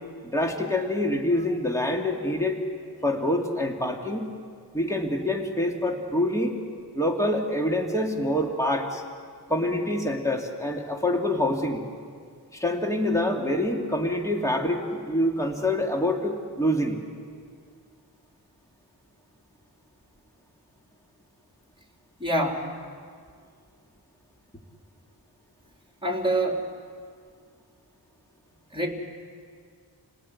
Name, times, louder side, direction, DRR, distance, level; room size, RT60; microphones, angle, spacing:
voice 1, 0.2-2.6 3.0-4.3 4.7-6.5 6.9-9.0 9.5-11.9 12.5-17.0, left 1 dB, 10° left, 1 dB, 2.8 m, -26 dB
voice 2, 22.2-22.7 26.0-26.7 28.7-28.9, right 1 dB, 10° right, 1 dB, 4.3 m, -25 dB
29.0 x 19.0 x 9.9 m, 2.1 s
wide cardioid pair, 65°, 40 cm